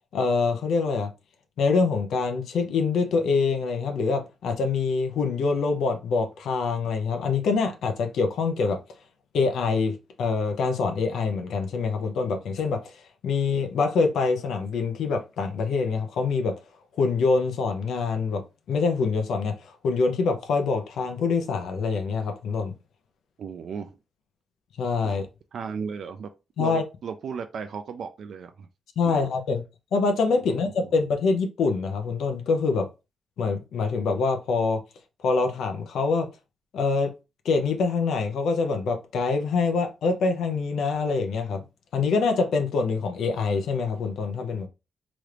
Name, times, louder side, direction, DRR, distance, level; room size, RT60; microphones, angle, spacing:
voice 1, 0.1-1.1 1.6-8.8 9.3-12.8 13.2-16.5 17.0-18.4 18.7-22.7 24.8-25.2 26.6-26.8 29.0-29.6 29.9-32.9 33.4-34.8 35.2-36.3 36.7-37.1 37.4-41.6 41.9-44.7, left 4 dB, 85° left, 0.6 m, -25 dB
voice 2, 23.4-23.9 25.0-25.2 25.5-26.3 26.6-28.7 29.0-29.2 30.5-30.6, right 6 dB, 65° right, 0.3 m, -35 dB
3.0 x 2.5 x 3.2 m
wide cardioid pair, 140°, 0 cm